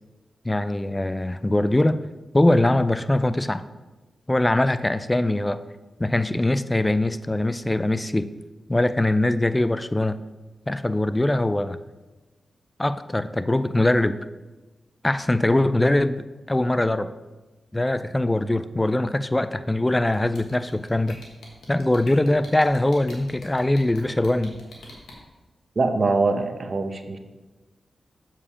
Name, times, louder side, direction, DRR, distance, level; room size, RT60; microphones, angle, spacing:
voice 1, 0.4-2.0 2.3-3.6 4.3-5.6 6.0-8.3 8.7-10.2 10.7-11.8 12.8-14.2 15.0-17.1 17.7-21.2 21.7-24.6, left 1 dB, 20° left, 14 dB, 0.4 m, -22 dB
sound 1, 20.1-25.1, left 2 dB, 90° left, 1.4 m, -45 dB
voice 2, 25.8-27.2, right 3 dB, 50° right, 7 dB, 0.9 m, -23 dB
7.1 x 4.9 x 5.0 m, 1.2 s
cardioid pair, 50°, 0 cm